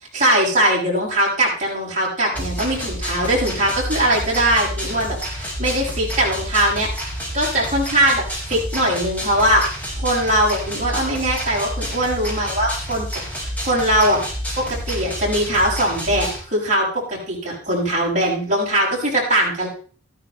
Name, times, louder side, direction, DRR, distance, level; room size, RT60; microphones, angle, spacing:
voice 1, 0.1-6.9 7.3-9.6 10.0-13.1 13.4-14.2 14.6-19.7, right 1 dB, 40° right, -4 dB, 7.4 m, -21 dB
sound 1, 2.3-16.4, equal, 10° left, 5.6 m, -29 dB
14.5 x 12.5 x 3.4 m, 0.42 s
head